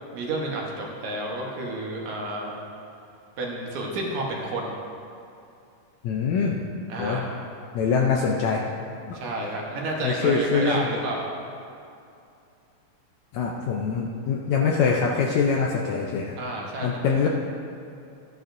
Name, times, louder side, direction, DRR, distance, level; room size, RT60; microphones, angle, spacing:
voice 1, 0.1-2.5 3.4-4.8 6.9-7.3 9.1-11.2 16.4-17.0, right 2 dB, 65° right, -2 dB, 2.3 m, -30 dB
voice 2, 6.0-6.7 7.0-7.2 7.7-8.6 9.1-9.2 10.0-10.9 13.3-16.4 16.8-17.3, left 5 dB, 75° left, -1 dB, 1.7 m, -24 dB
13.5 x 10.0 x 2.6 m, 2.6 s
omnidirectional pair, 3.8 m